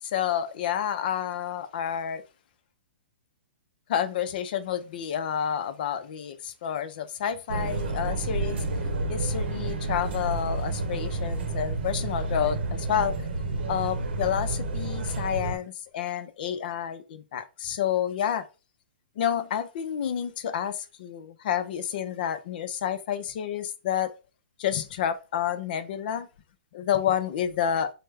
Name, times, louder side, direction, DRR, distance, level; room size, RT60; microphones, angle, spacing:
voice 1, 0.0-2.2 3.9-8.6 9.1-13.2 13.7-18.5 19.2-24.1 24.6-26.3 26.7-27.9, left 9 dB, 55° left, 0.5 m, -29 dB
sound 1, 7.5-15.6, right 3 dB, 75° right, 0.7 m, -30 dB
3.3 x 2.1 x 3.3 m
hypercardioid pair, 135°, 6 cm